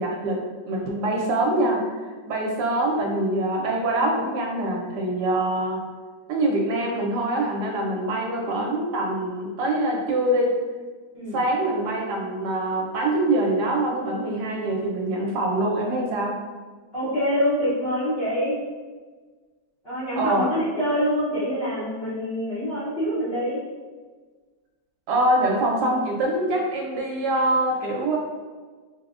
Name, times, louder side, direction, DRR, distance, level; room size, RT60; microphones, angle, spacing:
voice 1, 0.0-5.8 6.3-10.5 11.3-16.4 20.2-20.5 25.1-28.2, right 1 dB, 75° right, 0 dB, 1.1 m, -24 dB
voice 2, 11.1-11.5 16.9-18.6 19.8-23.6, equal, 50° left, -9 dB, 0.7 m, -25 dB
4.9 x 2.0 x 2.4 m, 1.4 s
omnidirectional pair, 1.9 m